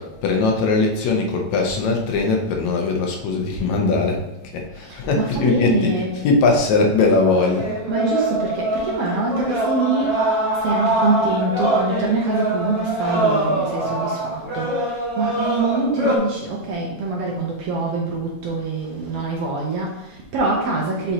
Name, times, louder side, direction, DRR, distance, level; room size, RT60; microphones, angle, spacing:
voice 1, 0.0-4.2 4.5-7.7, left 3 dB, 75° left, 1 dB, 2.1 m, -20 dB
voice 2, 4.8-6.2 7.9-10.2 10.6-21.1, right 3 dB, 65° right, -2 dB, 1.6 m, -24 dB
sound 1, 7.0-16.2, right 1 dB, 15° right, 1.3 m, -23 dB
6.8 x 5.2 x 2.9 m, 1.0 s
omnidirectional pair, 3.5 m